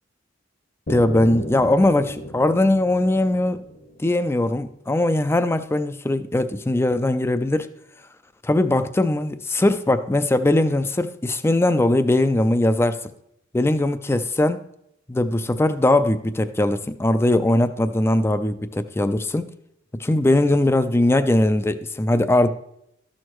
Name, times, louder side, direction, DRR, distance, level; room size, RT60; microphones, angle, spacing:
sound 1, 0.9-4.8, equal, 50° left, 1.0 m, -35 dB
voice 1, 0.9-3.6 4.0-7.7 8.4-13.1 13.5-14.6 15.1-19.5 20.0-22.5, left 1 dB, 15° left, 0.4 m, -20 dB
13.0 x 6.4 x 3.1 m
head